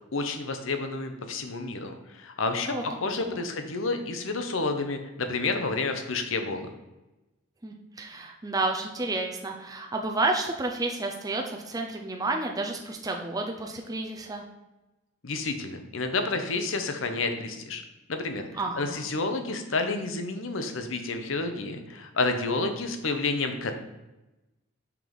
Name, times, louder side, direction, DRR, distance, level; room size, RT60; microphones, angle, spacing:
voice 1, 0.1-6.7 15.2-17.8 18.1-18.4 18.8-23.7, left 3 dB, 65° left, 6 dB, 0.9 m, -30 dB
voice 2, 3.1-3.5 7.6-14.4 18.5-19.1, right 2 dB, 20° right, 1 dB, 0.6 m, -31 dB
5.9 x 4.7 x 5.2 m, 1.0 s
head